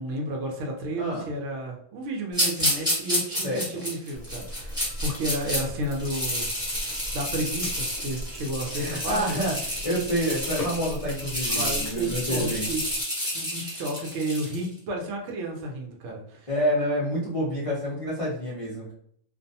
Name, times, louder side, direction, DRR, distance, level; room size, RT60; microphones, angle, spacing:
voice 1, 0.0-6.5 7.1-9.4 11.5-13.1 13.3-16.5, right 1 dB, 65° right, 1 dB, 0.9 m, -32 dB
voice 2, 1.0-1.3 3.4-3.8 8.7-12.6 16.5-18.9, equal, 45° left, -8 dB, 0.4 m, -28 dB
sound 1, 2.3-5.6 6.0-14.6, equal, 5° right, 0.8 m, -30 dB
sound 2, 4.1-13.0, equal, 30° left, 0.9 m, -39 dB
2.5 x 2.1 x 2.7 m, 0.65 s
omnidirectional pair, 1.5 m